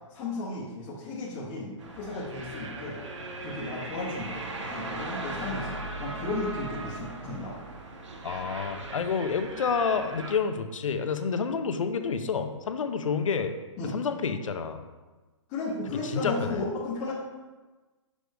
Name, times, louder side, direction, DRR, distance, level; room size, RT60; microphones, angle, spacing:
voice 1, 0.1-3.0 3.4-7.5 13.8-14.0 15.5-17.1, left 2 dB, 15° left, -7 dB, 0.6 m, -34 dB
sound 1, 1.8-10.3, right 2 dB, 70° right, 1.0 m, -38 dB
voice 2, 8.2-13.5 13.9-14.8 16.1-16.6, left 5 dB, 90° left, 8 dB, 0.7 m, -29 dB
6.3 x 5.2 x 3.3 m, 1.2 s
hypercardioid pair, 175°, 16 cm